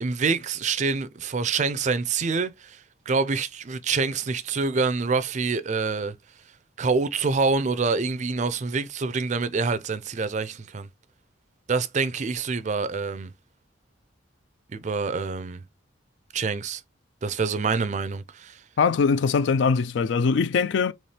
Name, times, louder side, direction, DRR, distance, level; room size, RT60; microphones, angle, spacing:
voice 1, 0.0-2.8 3.1-6.1 6.8-10.9 11.7-13.3 14.7-15.6 16.3-16.8 17.2-18.6, right 4 dB, 40° right, 0.4 m, -26 dB
voice 2, 18.8-20.9, left 5 dB, 65° left, 0.4 m, -22 dB
4.2 x 3.1 x 3.2 m
head